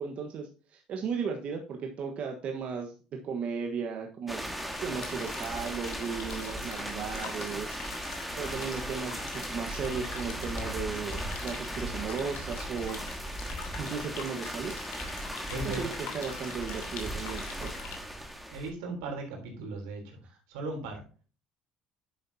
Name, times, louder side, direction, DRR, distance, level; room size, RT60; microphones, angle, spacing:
voice 1, 0.0-2.9 3.2-4.4 4.8-7.8 8.4-9.2 9.4-13.0 13.8-14.7 15.6-17.7 20.2-20.4, right 6 dB, 55° right, 2 dB, 1.3 m, -35 dB
sound 1, 4.3-18.7, equal, 5° right, 1.7 m, -37 dB
sound 2, 4.7-17.9, left 6 dB, 75° left, 2.6 m, -45 dB
voice 2, 15.5-15.9 18.5-20.2 20.5-21.0, right 2 dB, 90° right, 2 dB, 3.4 m, -37 dB
10.0 x 6.7 x 2.8 m, 0.37 s
supercardioid pair, 90°, 3 cm